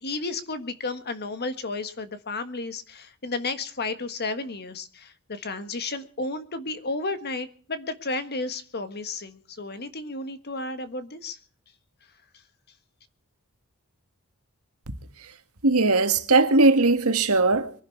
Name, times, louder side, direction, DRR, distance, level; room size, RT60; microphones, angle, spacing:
voice 1, 0.0-11.4, left 3 dB, 50° left, 1.5 m, -32 dB
voice 2, 15.6-17.7, right 3 dB, 70° right, 1.8 m, -19 dB
24.0 x 11.0 x 4.6 m
head